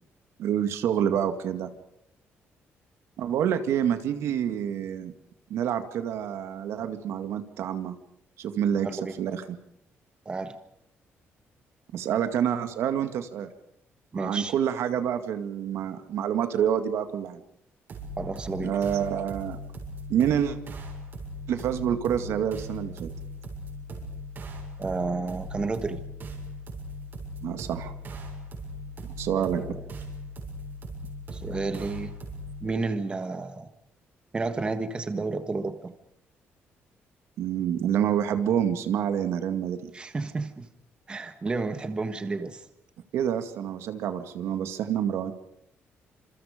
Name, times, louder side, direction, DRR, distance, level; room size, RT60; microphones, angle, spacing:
voice 1, 0.4-1.7 3.2-5.1 5.5-8.0 8.4-8.9 9.2-9.6 11.9-13.5 14.1-17.4 18.6-19.6 20.1-20.6 21.5-23.1 27.4-27.9 29.0-29.6 37.4-39.9 43.1-45.3, right 9 dB, 75° right, 8 dB, 2.1 m, -27 dB
voice 2, 8.8-9.1 10.2-10.5 14.1-14.5 18.2-18.8 24.8-26.0 29.3-29.7 31.3-32.1 32.6-33.7 34.3-35.9 39.9-40.7 41.1-42.6, right 3 dB, 20° right, 9 dB, 1.6 m, -31 dB
sound 1, 17.9-32.7, equal, 45° right, 7.2 m, -39 dB
28.5 x 27.0 x 5.2 m, 0.73 s
cardioid pair, 155°, 5 cm